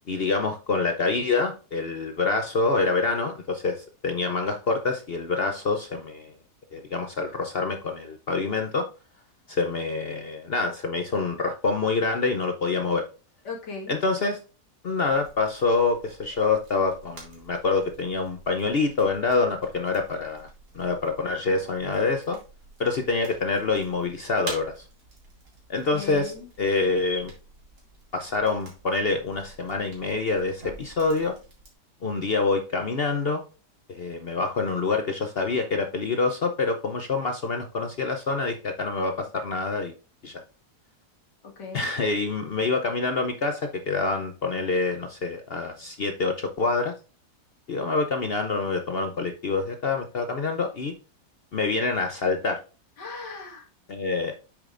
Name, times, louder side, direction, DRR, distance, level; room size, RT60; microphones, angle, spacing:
voice 1, 0.1-6.3 6.7-8.9 9.5-13.0 13.9-14.4 14.8-20.5 20.7-22.4 22.8-24.8 25.7-27.3 28.1-31.3 32.0-33.4 33.9-39.9 40.2-40.4 41.7-46.9 47.7-50.9 51.5-52.6 53.9-54.3, left 3 dB, 55° left, 6 dB, 0.6 m, -26 dB
voice 2, 13.4-13.9 25.9-26.5 41.4-41.9 53.0-53.7, left 4 dB, 85° left, 0 dB, 2.4 m, -38 dB
sound 1, 15.0-31.7, right 3 dB, 70° right, 3.0 m, -48 dB
8.3 x 6.6 x 2.5 m, 0.34 s
omnidirectional pair, 1.8 m